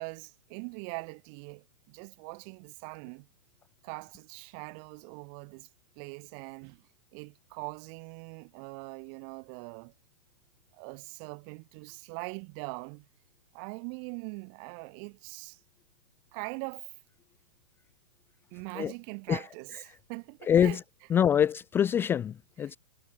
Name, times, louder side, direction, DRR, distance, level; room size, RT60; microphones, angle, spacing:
voice 1, 0.0-3.3 3.8-5.7 5.9-6.8 7.1-9.9 10.7-13.1 13.5-15.6 16.3-16.9 18.5-20.8 22.6-22.7, right 40 dB or more, 40° right, 1.5 m, -42 dB
voice 2, 20.5-20.8 21.1-22.8, left 9 dB, 15° left, 0.4 m, -25 dB
figure-of-eight pair, 110°, 16 cm